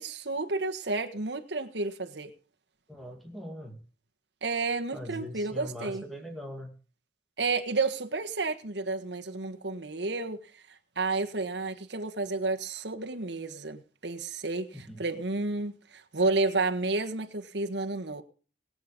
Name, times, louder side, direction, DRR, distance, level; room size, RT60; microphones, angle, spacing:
voice 1, 0.0-2.3 4.4-6.0 7.4-10.4 11.0-14.7 15.0-18.2, right 3 dB, 80° right, 1.5 m, -31 dB
voice 2, 2.9-3.8 4.9-6.7 14.7-15.0, equal, ahead, 2.6 m, -41 dB
20.0 x 7.9 x 5.2 m
head